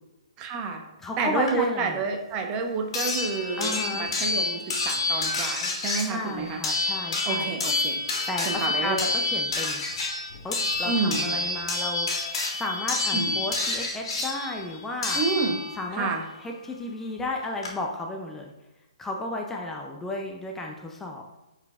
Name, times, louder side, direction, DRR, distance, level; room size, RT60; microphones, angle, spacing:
voice 1, 0.4-0.8 1.2-6.6 7.2-8.0 8.4-9.0 10.9-11.3 13.1-13.4 15.1-15.6 15.9-16.2, right 4 dB, 25° right, 4 dB, 0.9 m, -29 dB
voice 2, 1.0-2.0 3.6-4.1 6.0-7.5 8.3-9.8 10.4-15.2 15.7-16.1 16.4-18.5 19.0-21.4, left 2 dB, 10° left, 1 dB, 0.5 m, -33 dB
sound 1, 1.5-1.6 2.9-15.9 17.2-17.3 17.6-17.7, left 3 dB, 55° left, 1.8 m, -28 dB
9.4 x 4.1 x 2.4 m, 1.0 s
hypercardioid pair, 130°, 3 cm